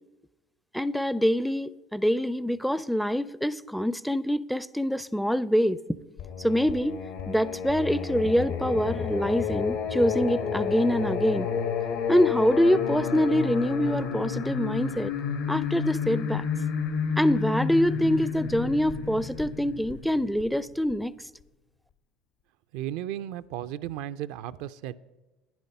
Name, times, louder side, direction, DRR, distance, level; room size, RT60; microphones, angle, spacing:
voice 1, 0.7-5.8 6.4-7.0 7.3-11.5 12.1-15.1 15.5-16.5 17.2-21.1, equal, ahead, 0.4 m, -25 dB
Singing, 6.2-20.9, left 6 dB, 75° left, 1.5 m, -31 dB
voice 2, 22.7-24.9, right 12 dB, 70° right, 0.4 m, -34 dB
10.5 x 9.9 x 5.5 m
hypercardioid pair, 75°, 0 cm